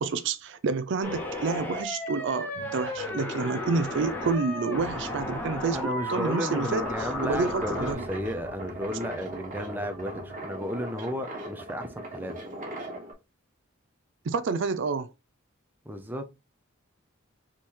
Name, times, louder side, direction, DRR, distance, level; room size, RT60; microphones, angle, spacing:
voice 1, 0.0-6.8 7.2-8.1 14.2-15.1, right 4 dB, 60° right, 0.4 m, -29 dB
sound 1, 1.0-7.9, left 1 dB, 10° left, 0.9 m, -34 dB
sound 2, 2.5-10.4, left 2 dB, 45° left, 1.1 m, -47 dB
voice 2, 5.7-12.3 15.9-16.3, equal, 10° right, 0.5 m, -33 dB
sound 3, 6.8-13.1, right 1 dB, 40° right, 1.3 m, -39 dB
3.7 x 3.1 x 4.2 m
head